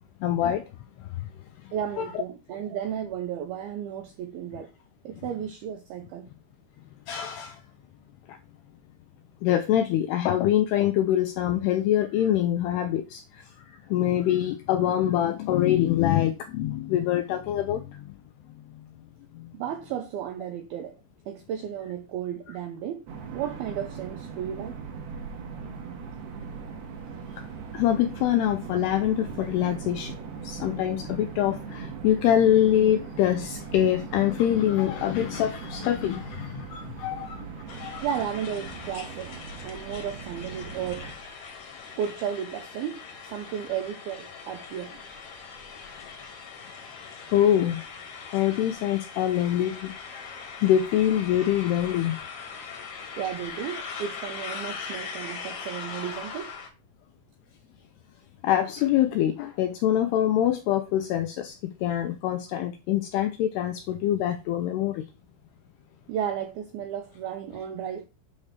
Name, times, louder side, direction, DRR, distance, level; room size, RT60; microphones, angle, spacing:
voice 1, 0.2-0.6 1.0-1.3 2.0-2.1 7.1-7.6 8.3-8.4 9.4-18.1 18.7-18.9 19.3-19.5 27.7-30.1 30.4-37.5 37.8-38.1 47.3-47.8 48.3-49.9 50.6-52.2 58.4-65.1, left 11 dB, 85° left, 2.3 m, -25 dB
voice 2, 1.7-4.7 5.0-6.3 19.5-21.0 21.3-23.0 23.3-24.8 38.0-39.3 39.6-41.1 42.0-45.0 53.2-56.5 66.1-68.1, right 9 dB, 90° right, 2.2 m, -33 dB
sound 1, 23.1-41.1, right 6 dB, 65° right, 3.4 m, -40 dB
sound 2, 37.7-56.7, left 5 dB, 55° left, 2.2 m, -40 dB
8.4 x 3.3 x 6.4 m
omnidirectional pair, 5.3 m